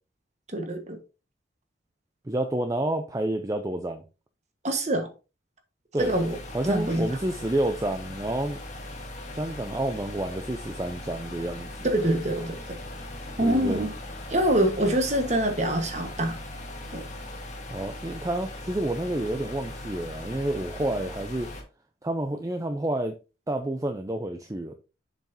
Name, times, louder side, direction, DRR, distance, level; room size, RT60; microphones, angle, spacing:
voice 1, 0.5-1.0 4.6-5.1 6.0-6.4 6.7-7.1 11.8-12.6 13.4-13.9 14.3-16.4 16.9-17.0, right 1 dB, 35° right, 1.4 m, -25 dB
voice 2, 2.3-4.0 5.9-6.1 6.5-8.6 9.3-11.7 13.4-13.8 17.7-21.5 22.0-23.1 23.5-24.8, right 1 dB, 15° right, 0.5 m, -29 dB
sound 1, 6.0-21.6, left 1 dB, 40° left, 1.7 m, -39 dB
7.2 x 5.8 x 2.8 m
head